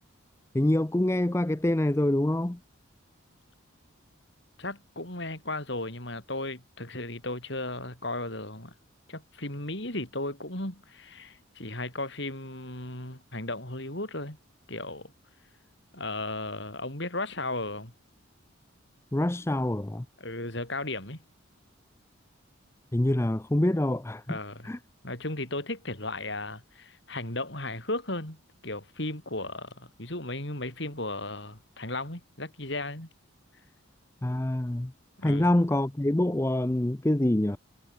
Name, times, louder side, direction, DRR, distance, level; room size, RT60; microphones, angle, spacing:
voice 1, 0.5-2.6 19.1-20.0 22.9-24.4 24.6-24.8 34.2-34.9 35.2-37.6, left 1 dB, 15° left, 0.5 m, -25 dB
voice 2, 4.6-8.7 9.1-14.4 14.7-15.1 15.9-17.9 20.2-21.2 24.3-24.7 25.0-33.1 35.2-35.5, left 2 dB, 55° left, 5.5 m, -35 dB
head